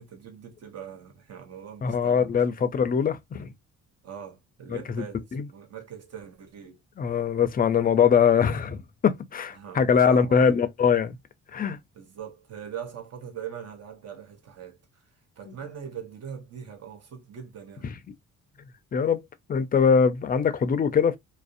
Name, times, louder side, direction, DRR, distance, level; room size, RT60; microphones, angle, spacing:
voice 1, 0.0-2.3 4.0-6.8 9.5-10.6 11.9-14.8 15.4-17.9, right 8 dB, 55° right, 0.8 m, -41 dB
voice 2, 1.8-3.5 4.7-5.0 5.3-5.4 7.0-11.2 11.5-11.8 17.8-18.0 18.9-19.2 19.5-21.2, left 6 dB, 30° left, 0.4 m, -22 dB
2.5 x 2.0 x 2.5 m
cardioid pair, 90°, 30 cm